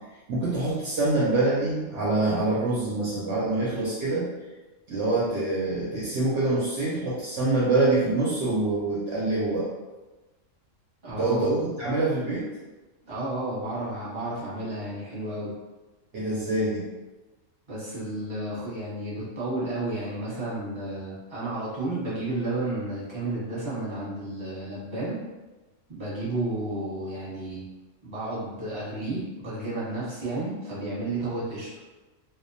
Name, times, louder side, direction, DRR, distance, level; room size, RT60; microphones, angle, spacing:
voice 1, 0.3-4.3 4.9-9.7 11.2-12.5 16.1-16.8, right 2 dB, 70° right, -7 dB, 0.8 m, -25 dB
voice 2, 11.0-11.6 13.0-15.5 17.7-25.2 25.9-27.6 28.0-31.7, right 2 dB, 25° right, -9 dB, 0.9 m, -32 dB
2.4 x 2.1 x 2.5 m, 1.2 s
omnidirectional pair, 1.4 m